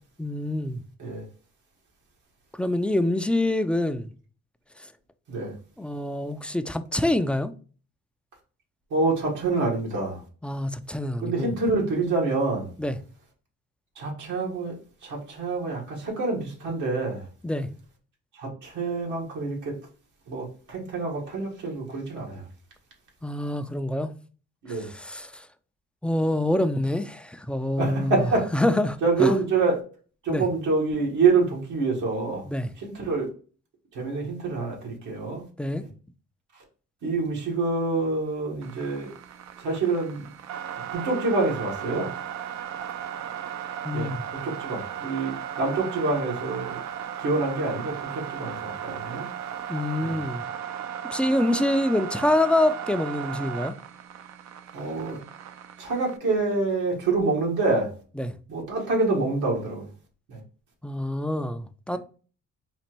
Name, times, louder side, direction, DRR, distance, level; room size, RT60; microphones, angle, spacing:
voice 1, 0.2-0.8 2.6-4.1 5.8-7.5 10.4-11.5 12.8-13.0 17.4-17.7 23.2-24.1 24.8-25.5 26.0-28.3 28.5-29.4 30.3-30.5 32.5-32.7 35.6-35.8 43.8-44.2 49.7-50.4 51.1-53.7 58.2-58.3 60.8-62.0, left 1 dB, 5° left, 0.3 m, -26 dB
voice 2, 8.9-10.2 11.2-12.7 14.0-14.7 15.0-17.2 18.4-19.7 20.3-22.4 24.6-24.9 27.8-28.5 29.0-29.8 30.2-32.4 32.8-33.3 34.0-35.4 37.0-39.1 39.6-40.2 40.9-42.1 43.9-44.1 44.4-46.8 47.2-49.2 50.0-50.2 54.7-55.2 55.8-57.9 58.5-59.9 60.3-60.4, right 3 dB, 85° right, 1.7 m, -26 dB
sound 1, 38.6-56.2, right 9 dB, 65° right, 0.5 m, -36 dB
4.1 x 2.5 x 4.5 m
cardioid pair, 90°, 30 cm